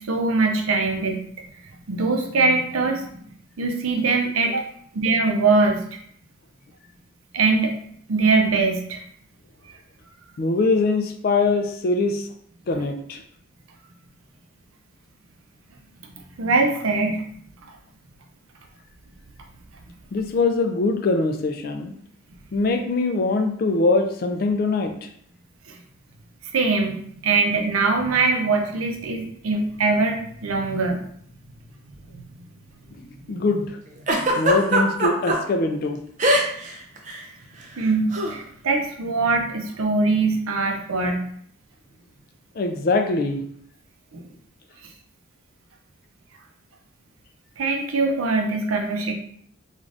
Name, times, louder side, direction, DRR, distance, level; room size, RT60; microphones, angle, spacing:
voice 1, 0.1-1.2 1.9-3.1 3.6-4.7 4.9-5.8 7.3-7.8 8.1-9.0 16.4-17.2 25.7-25.8 26.5-27.0 27.2-31.0 32.1-32.2 32.9-33.0 37.8-41.2 44.1-44.2 47.6-49.1, right 3 dB, 90° right, 2 dB, 0.5 m, -22 dB
voice 2, 10.4-12.3 12.7-13.2 20.1-21.9 22.5-24.9 33.3-33.8 34.4-36.0 42.6-43.4, left 3 dB, 45° left, 5 dB, 0.3 m, -22 dB
Giggle, 34.1-35.4 36.2-36.7 37.0-37.2 38.1-38.3, right 1 dB, 35° right, 0.4 m, -20 dB
3.2 x 2.4 x 2.5 m, 0.64 s
head